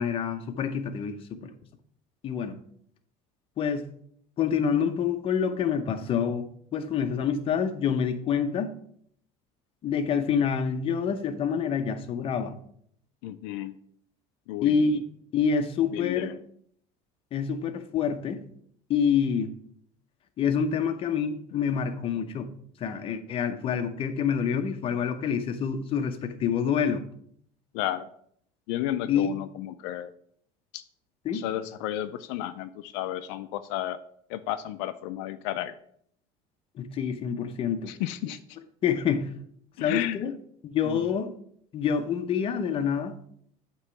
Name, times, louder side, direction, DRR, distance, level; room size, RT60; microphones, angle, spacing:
voice 1, 0.0-1.5 2.2-2.6 3.6-3.9 4.4-8.8 9.8-12.5 14.6-15.0 15.3-16.3 17.3-18.4 18.9-19.6 20.4-22.5 22.8-27.0 29.1-29.3 31.2-31.5 36.8-37.9 38.8-39.3 39.8-40.3 40.6-41.3 41.7-43.2, left 7 dB, 40° left, 0.7 m, -27 dB
voice 2, 13.2-13.7 14.5-14.8 15.9-16.3 27.7-28.1 28.7-30.1 30.7-30.8 31.3-34.0 34.3-35.7 37.9-38.4 39.8-40.2 40.9-41.0, left 13 dB, 85° left, 0.4 m, -32 dB
8.0 x 3.0 x 5.7 m
cardioid pair, 125°, 15 cm